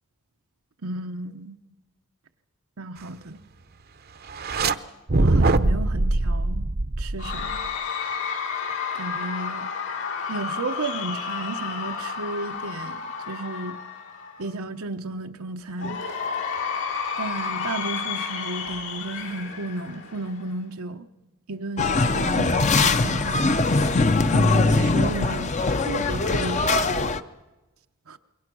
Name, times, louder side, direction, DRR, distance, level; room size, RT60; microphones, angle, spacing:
voice 1, 0.8-1.6 2.8-3.4 5.1-6.6 7.0-7.6 8.9-9.7 10.3-13.0 13.3-13.8 14.4-16.0 17.2-21.1 21.5-23.6 24.3-26.9 28.1-28.2, right 2 dB, 85° right, 1.0 m, -33 dB
sound 1, 4.3-4.7 5.1-7.7, right 2 dB, 45° right, 0.8 m, -22 dB
Cheering / Crowd, 7.2-14.5 15.8-20.5, left 6 dB, 80° left, 5.3 m, -31 dB
sound 2, 21.8-27.2, left 3 dB, 35° left, 0.7 m, -21 dB
26.5 x 22.5 x 6.2 m
head